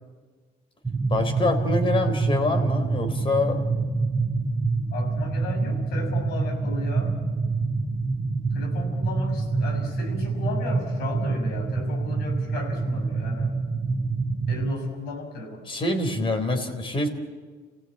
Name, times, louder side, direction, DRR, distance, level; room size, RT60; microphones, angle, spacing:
sound 1, 0.8-14.7, right 3 dB, 5° right, 2.0 m, -26 dB
voice 1, 1.1-3.6 15.7-17.1, left 2 dB, 30° left, 7 dB, 3.8 m, -25 dB
voice 2, 4.9-7.1 8.5-13.5 14.5-15.7, left 3 dB, 80° left, 3 dB, 6.3 m, -35 dB
29.5 x 16.5 x 8.7 m, 1.5 s
cardioid pair, 100°, 17 cm